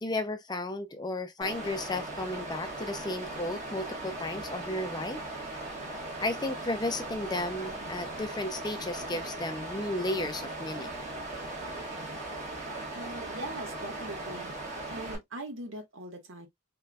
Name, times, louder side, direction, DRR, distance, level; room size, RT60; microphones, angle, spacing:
voice 1, 0.0-5.2 6.2-11.0, left 2 dB, 20° left, 0.5 m, -34 dB
Water, 1.4-15.2, right 2 dB, 35° right, 1.4 m, -38 dB
voice 2, 12.9-14.5 14.9-16.5, right 1 dB, 75° right, 1.4 m, -41 dB
3.8 x 3.3 x 2.2 m
head